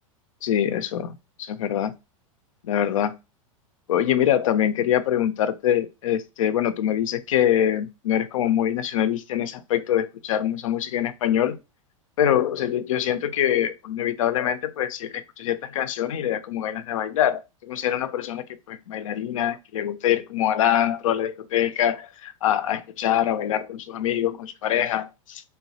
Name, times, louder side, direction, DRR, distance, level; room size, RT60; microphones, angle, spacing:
voice 1, 0.4-1.1 1.4-1.9 2.6-3.1 3.9-11.6 12.2-25.4, left 10 dB, 70° left, 0.4 m, -24 dB
3.0 x 2.2 x 2.6 m
hypercardioid pair, 100°, 17 cm